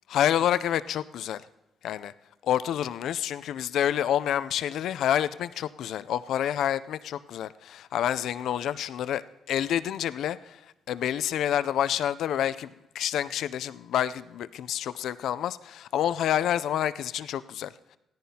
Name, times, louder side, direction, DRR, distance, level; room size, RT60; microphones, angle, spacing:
voice 1, 0.1-1.4 1.8-2.1 2.5-10.6 10.9-18.0, left 10 dB, 75° left, 14 dB, 0.4 m, -28 dB
17.5 x 14.0 x 2.8 m, 0.91 s
cardioid pair, 90°, 0 cm